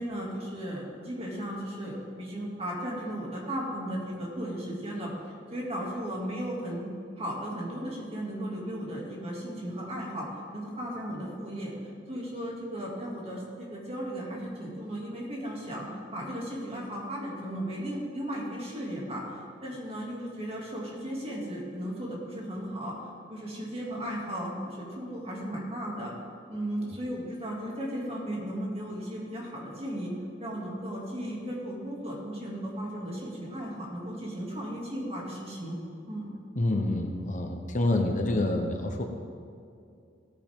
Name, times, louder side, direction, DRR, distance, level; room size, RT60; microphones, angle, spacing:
voice 1, 0.0-5.1 5.5-6.9 7.2-10.3 10.5-11.7 12.1-23.0 23.3-26.1 26.5-30.1 30.4-35.8 36.1-36.3, equal, 35° right, -3 dB, 2.5 m, -35 dB
voice 2, 36.6-39.0, left 2 dB, 40° left, 4 dB, 0.9 m, -27 dB
17.0 x 9.5 x 3.7 m, 2.4 s
head